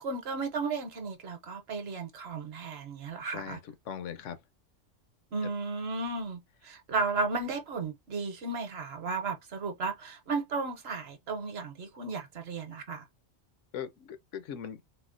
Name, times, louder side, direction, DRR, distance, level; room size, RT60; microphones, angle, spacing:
voice 1, 0.0-3.6 5.3-13.0, right 4 dB, 60° right, 0.9 m, -34 dB
voice 2, 3.3-4.4 13.7-14.8, left 8 dB, 80° left, 0.9 m, -40 dB
4.1 x 2.0 x 2.4 m
omnidirectional pair, 1.3 m